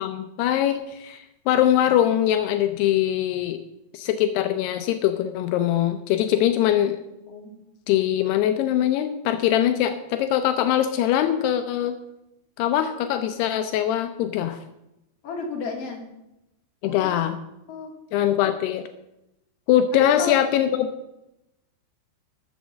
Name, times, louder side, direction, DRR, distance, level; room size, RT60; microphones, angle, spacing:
voice 1, 0.0-3.6 3.9-7.0 7.9-12.0 12.6-14.6 16.8-17.4 18.1-18.9 19.7-20.9, left 11 dB, 85° left, 8 dB, 2.8 m, -22 dB
voice 2, 7.1-7.5 15.2-16.0 16.9-17.4 17.7-17.9 20.2-20.4, left 4 dB, 40° left, 0 dB, 3.3 m, -33 dB
13.5 x 7.2 x 7.4 m, 0.89 s
omnidirectional pair, 4.7 m